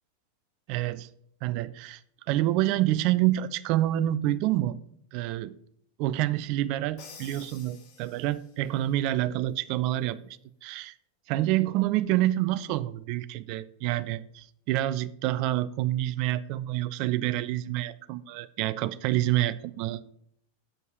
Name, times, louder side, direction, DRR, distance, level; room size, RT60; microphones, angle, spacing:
voice 1, 0.7-1.1 1.4-2.0 2.3-4.8 5.1-5.5 6.0-10.2 10.6-10.9 11.3-20.1, right 14 dB, 45° right, 16 dB, 0.4 m, -27 dB
Crash cymbal, 7.0-8.6, left 5 dB, 45° left, 1.7 m, -49 dB
7.3 x 5.4 x 6.1 m, 0.68 s
figure-of-eight pair, 90°, 0 cm